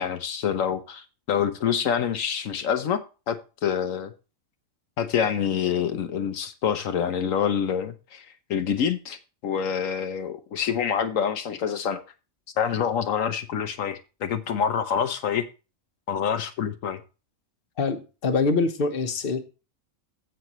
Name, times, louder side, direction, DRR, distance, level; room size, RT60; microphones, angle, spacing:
voice 1, 0.0-3.0 3.3-4.1 5.0-9.2 9.4-12.0 12.6-15.5 16.1-17.0, left 8 dB, 80° left, 1.2 m, -26 dB
voice 2, 17.8-19.5, left 4 dB, 45° left, 1.3 m, -24 dB
15.5 x 5.8 x 3.0 m
omnidirectional pair, 1.4 m